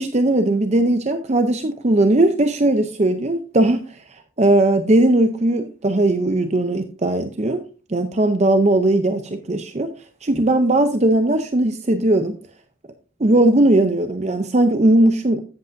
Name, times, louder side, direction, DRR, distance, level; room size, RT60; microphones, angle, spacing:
voice 1, 0.0-7.6 7.9-9.9 10.2-12.4 13.2-15.4, right 1 dB, 30° right, 0.6 m, -18 dB
13.0 x 8.2 x 2.6 m
head